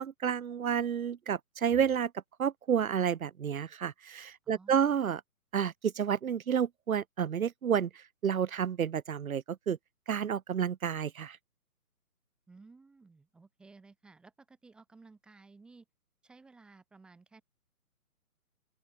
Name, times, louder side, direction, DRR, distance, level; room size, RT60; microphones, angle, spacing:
voice 1, 0.0-2.1 2.4-5.2 5.5-9.8 10.1-11.4, right 8 dB, 65° right, 0.8 m, -30 dB
voice 2, 4.4-4.9 12.5-15.9 16.2-17.4, right 3 dB, ahead, 2.1 m, -56 dB
open air
hypercardioid pair, 175°, 45 cm